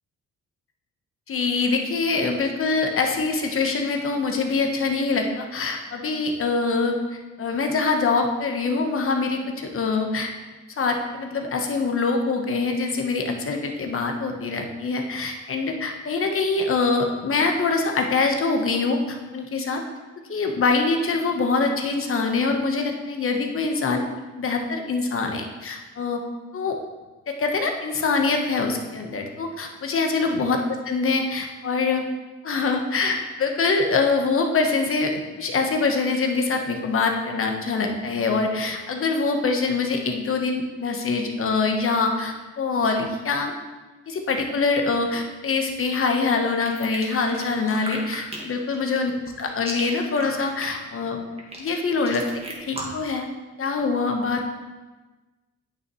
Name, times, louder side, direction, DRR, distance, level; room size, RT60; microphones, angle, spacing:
voice 1, 1.3-10.3 10.8-19.8 20.3-24.0 24.3-26.2 26.5-26.8 27.3-32.1 32.4-43.5 44.1-49.1 49.4-51.2 51.6-53.3 53.6-54.5, left 4 dB, 45° left, 3 dB, 1.2 m, -24 dB
sound 1, 46.6-53.1, right 1 dB, 20° right, 1.7 m, -35 dB
8.9 x 6.4 x 3.1 m, 1.2 s
cardioid pair, 90°, 30 cm